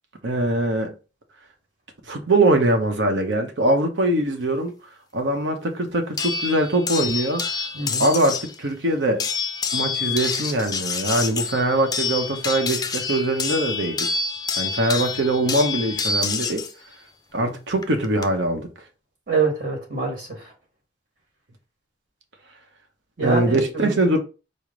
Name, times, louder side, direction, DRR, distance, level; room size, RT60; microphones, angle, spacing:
voice 1, 0.2-0.9 2.1-4.7 5.1-7.4 8.0-9.3 9.7-14.1 14.6-16.6 17.3-18.7 23.2-24.2, right 1 dB, 75° right, 0.8 m, -22 dB
sound 1, 6.2-8.5 9.2-16.7 17.8-18.2, left 5 dB, 20° left, 0.4 m, -27 dB
voice 2, 19.3-20.3 23.2-23.9, right 4 dB, 50° right, 1.5 m, -24 dB
4.8 x 2.1 x 3.8 m
head